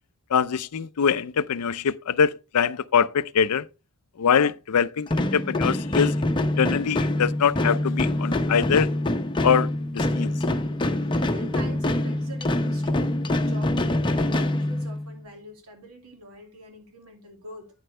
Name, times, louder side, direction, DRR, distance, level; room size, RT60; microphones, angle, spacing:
voice 1, 0.3-3.7 4.2-6.1 6.6-8.9 9.4-10.3, left 7 dB, 90° left, 0.5 m, -23 dB
sound 1, 5.1-15.2, left 1 dB, 20° left, 0.8 m, -25 dB
voice 2, 11.3-17.8, right 1 dB, 70° right, 2.5 m, -44 dB
9.4 x 7.7 x 3.3 m
head